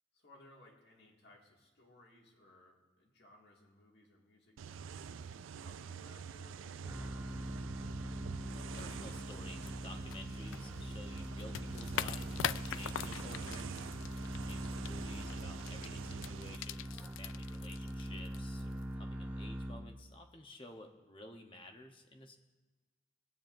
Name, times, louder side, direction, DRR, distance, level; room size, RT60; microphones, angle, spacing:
voice 1, 0.1-5.1 5.6-7.6, left 1 dB, 55° left, -2 dB, 2.1 m, -62 dB
sound 1, 4.6-16.6, right 7 dB, 90° right, 0.4 m, -47 dB
sound 2, 6.8-20.2, equal, 10° right, 0.7 m, -43 dB
voice 2, 8.5-13.7 14.4-22.4, left 2 dB, 25° left, 5 dB, 0.9 m, -53 dB
sound 3, 8.7-19.0, left 10 dB, 85° left, 0.3 m, -44 dB
21.0 x 9.0 x 2.6 m, 1.2 s
head